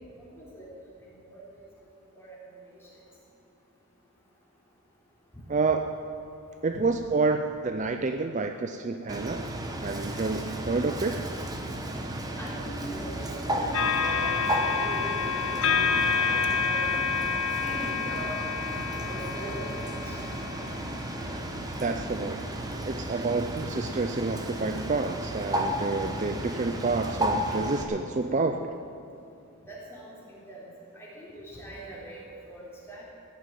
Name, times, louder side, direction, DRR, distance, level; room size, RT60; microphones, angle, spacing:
voice 1, 0.1-0.7 1.2-1.4 2.1-2.3 2.7-2.8 12.4-17.0 17.6-18.5 18.8-20.2 29.7-30.6 31.0-33.0, right 1 dB, 10° left, -6 dB, 3.8 m, -41 dB
voice 2, 5.5-6.0 6.6-9.4 9.8-11.2 21.8-22.4 22.9-28.7, right 3 dB, 35° right, 6 dB, 0.4 m, -29 dB
Bird, 9.1-27.8, right 1 dB, 15° right, 1.0 m, -33 dB
sound 1, 13.7-21.2 22.0-22.1, left 6 dB, 65° left, 0.9 m, -29 dB
16.0 x 7.4 x 9.2 m, 2.7 s
head